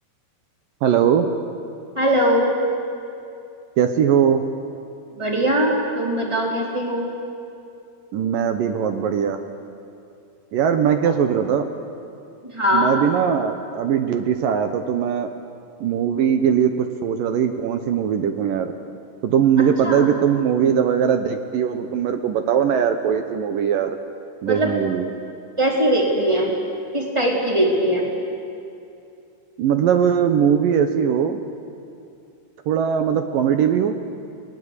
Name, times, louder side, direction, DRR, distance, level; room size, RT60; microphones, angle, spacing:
voice 1, 0.8-1.3 3.8-4.4 8.1-9.4 10.5-11.7 12.7-15.3 15.8-18.7 19.2-24.0 24.4-25.1 29.6-31.4 32.7-34.0, right 8 dB, 70° right, 7 dB, 2.3 m, -20 dB
voice 2, 2.0-2.5 5.1-7.1 12.4-13.0 19.6-20.1 24.4-24.7 25.6-26.5 26.9-28.1, equal, 5° right, -1 dB, 3.5 m, -21 dB
30.0 x 19.5 x 8.3 m, 2.5 s
omnidirectional pair, 4.7 m